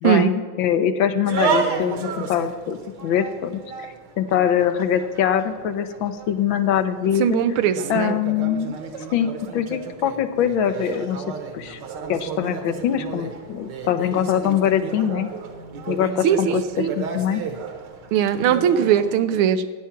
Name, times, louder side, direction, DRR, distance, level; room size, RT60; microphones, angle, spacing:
voice 1, 0.0-3.6 4.2-7.4 7.9-8.7 9.1-11.2 11.5-11.8 12.1-15.3 15.9-17.4, left 9 dB, 70° left, 10 dB, 1.5 m, -23 dB
sound 1, 1.2-19.1, right 5 dB, 60° right, 1.8 m, -32 dB
voice 2, 7.2-8.2 16.2-16.9 18.1-19.6, right 9 dB, 85° right, 12 dB, 1.6 m, -20 dB
15.5 x 9.5 x 5.9 m, 1.5 s
omnidirectional pair, 2.3 m